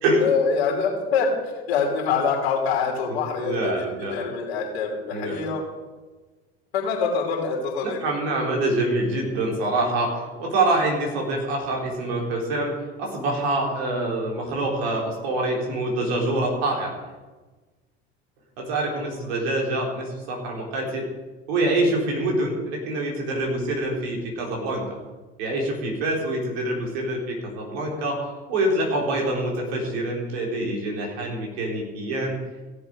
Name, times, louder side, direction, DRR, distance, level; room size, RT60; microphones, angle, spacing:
voice 1, 0.2-3.7 4.1-5.6 6.7-8.0, left 5 dB, 80° left, 0 dB, 3.0 m, -25 dB
voice 2, 3.1-4.3 5.1-5.5 7.8-12.7 13.0-17.0 18.6-21.1 21.5-25.0 25.4-32.4, right 2 dB, 75° right, -1 dB, 3.7 m, -26 dB
16.5 x 7.2 x 5.1 m, 1.3 s
hypercardioid pair, 75°, 32 cm